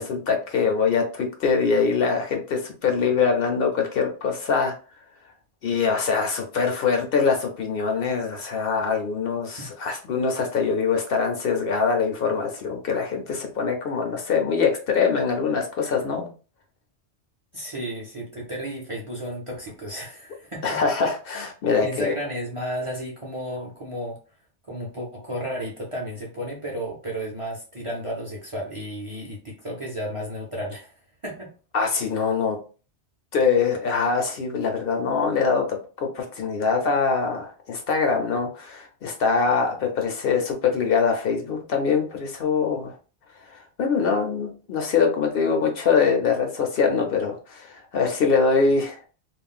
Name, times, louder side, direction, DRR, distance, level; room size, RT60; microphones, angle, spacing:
voice 1, 0.0-4.7 5.6-16.3 20.6-22.1 31.7-32.6 33.3-42.9 43.5-49.0, left 5 dB, 60° left, 3 dB, 0.7 m, -23 dB
voice 2, 17.5-20.8 21.8-24.2 24.7-30.9 31.2-31.5, equal, 35° right, -3 dB, 0.5 m, -33 dB
2.4 x 2.0 x 3.5 m, 0.36 s
omnidirectional pair, 1.2 m